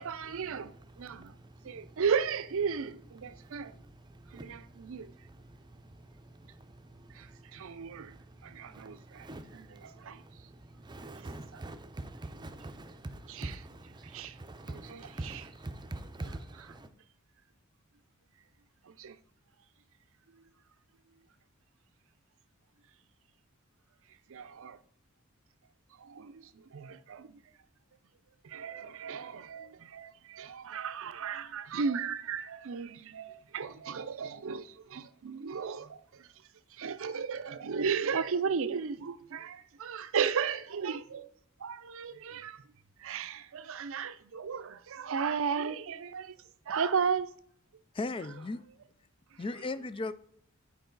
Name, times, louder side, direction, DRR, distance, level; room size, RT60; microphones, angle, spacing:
voice 1, 0.0-1.4 1.6-3.7 4.3-5.1 7.1-8.2 8.4-10.2 11.1-11.6 13.3-13.6 14.0-14.4 14.7-15.5 16.2-16.8 18.9-19.2 24.3-24.8 26.0-27.4 28.4-36.3 36.7-41.3 41.6-42.6 43.0-46.3 46.7-47.3 49.3-49.4, right 6 dB, 65° right, 0.5 m, -35 dB
voice 2, 1.0-2.0 3.3-3.9 4.1-5.1 5.4-16.9, right 2 dB, 20° right, 0.6 m, -46 dB
voice 3, 47.9-48.6 49.4-50.1, left 3 dB, 25° left, 0.3 m, -35 dB
9.2 x 4.8 x 3.8 m
head